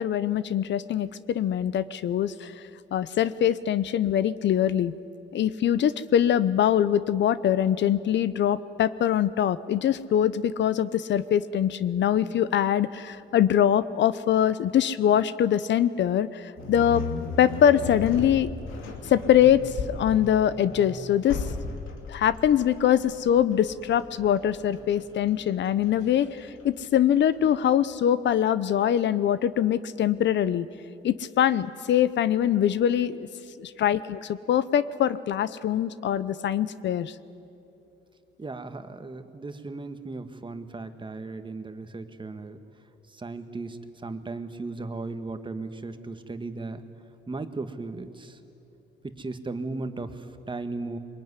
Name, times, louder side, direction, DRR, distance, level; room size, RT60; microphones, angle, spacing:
voice 1, 0.0-2.6 2.9-4.9 5.3-17.0 17.4-18.5 19.1-21.4 22.1-30.7 31.0-33.3 33.6-37.1, left 10 dB, 65° left, 16 dB, 0.8 m, -23 dB
sound 1, 16.6-27.7, left 3 dB, 85° left, 2.8 m, -36 dB
voice 2, 38.4-42.6 43.1-46.8 47.3-48.4 49.0-51.0, right 3 dB, 25° right, 8 dB, 1.7 m, -36 dB
22.5 x 21.0 x 9.8 m, 2.7 s
cardioid pair, 90°, 20 cm